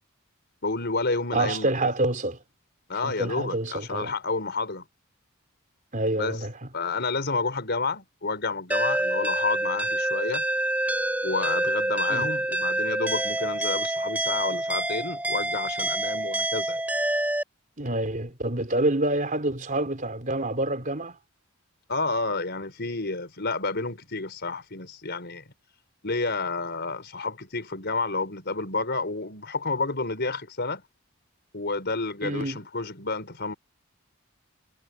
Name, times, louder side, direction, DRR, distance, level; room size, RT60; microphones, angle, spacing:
voice 1, 0.6-1.9 2.9-4.8 6.1-6.4 6.7-10.4 11.2-16.8 21.9-25.4 26.0-30.8 31.5-33.5, left 3 dB, 50° left, 4.8 m, -30 dB
voice 2, 1.3-2.4 3.0-4.1 5.9-6.6 12.1-12.3 17.8-21.2 32.2-32.6, right 2 dB, 40° right, 4.0 m, -27 dB
sound 1, 8.7-17.4, right 1 dB, 5° right, 3.6 m, -27 dB
head